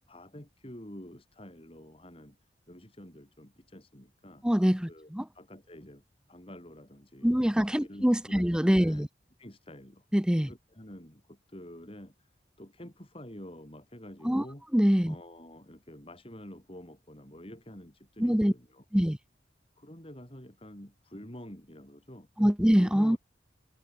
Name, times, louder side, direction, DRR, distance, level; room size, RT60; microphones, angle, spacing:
voice 1, 0.0-2.4 2.7-4.4 4.9-5.1 5.3-6.0 6.3-7.4 7.8-9.1 9.4-10.0 10.5-12.3 12.6-14.7 15.0-18.8 19.8-22.3 22.8-23.2, left 1 dB, 30° left, 4.4 m, -48 dB
voice 2, 4.4-5.2 7.2-9.1 10.1-10.5 14.2-14.4 14.7-15.1 18.2-18.5 18.9-19.2 22.4-23.2, equal, 5° right, 0.8 m, -24 dB
head